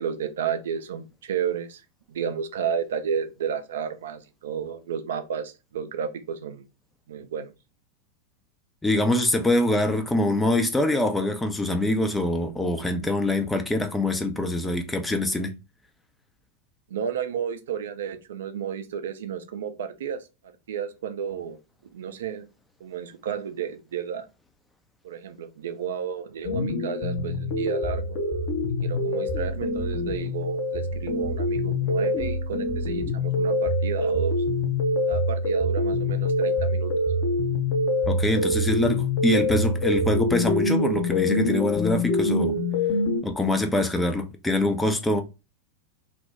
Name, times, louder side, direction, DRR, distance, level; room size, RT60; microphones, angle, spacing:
voice 1, 0.0-1.8 2.1-6.6 7.1-7.5 16.9-20.2 20.7-21.6 21.9-22.5 22.8-24.3 25.0-28.2 28.8-34.4 35.1-36.9, right 7 dB, 60° right, 0.4 m, -32 dB
voice 2, 8.8-15.6 38.1-42.6 43.2-45.2, left 1 dB, 10° left, 0.4 m, -24 dB
sound 1, 26.4-43.2, left 1 dB, 45° left, 0.7 m, -25 dB
2.7 x 2.1 x 3.3 m
figure-of-eight pair, 90°, 0 cm